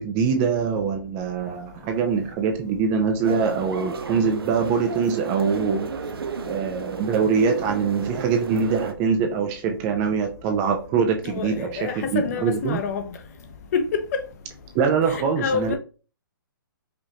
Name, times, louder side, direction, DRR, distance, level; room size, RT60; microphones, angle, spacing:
voice 1, 0.0-5.9 6.5-12.8 14.7-15.8, right 6 dB, 20° right, 0.4 m, -23 dB
sound 1, 3.2-8.9, right 5 dB, 85° right, 0.6 m, -33 dB
voice 2, 11.2-13.1 13.7-14.2 15.1-15.8, left 6 dB, 45° left, 0.7 m, -27 dB
5.0 x 2.5 x 2.8 m
hypercardioid pair, 150°, 12 cm